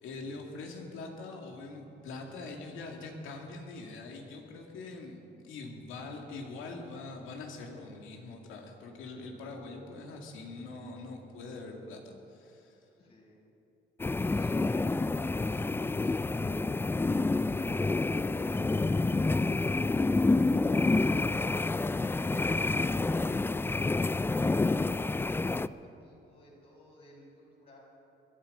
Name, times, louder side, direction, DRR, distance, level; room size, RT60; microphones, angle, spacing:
voice 1, 0.0-12.8, left 3 dB, 90° left, 2 dB, 2.3 m, -43 dB
voice 2, 13.0-13.5 14.1-27.8, left 1 dB, 50° left, -6 dB, 4.9 m, -56 dB
sound 1, 14.0-25.7, left 3 dB, 10° left, 0.3 m, -28 dB
20.5 x 12.0 x 5.4 m, 2.9 s
cardioid pair, 90°, 20 cm